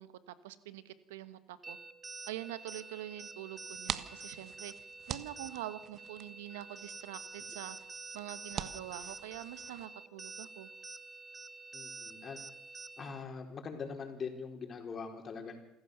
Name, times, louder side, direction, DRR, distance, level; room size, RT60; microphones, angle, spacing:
voice 1, 0.0-1.8 2.3-4.7 5.1-7.8 8.1-10.7, right 14 dB, 80° right, 14 dB, 1.2 m, -45 dB
sound 1, 1.6-13.2, right 4 dB, 25° right, 1.1 m, -48 dB
sound 2, 3.6-9.9, right 9 dB, 55° right, 1.4 m, -45 dB
voice 2, 11.7-12.4 13.0-15.6, left 5 dB, 40° left, 4 dB, 4.7 m, -42 dB
27.5 x 15.5 x 6.9 m, 0.83 s
hypercardioid pair, 65°, 0 cm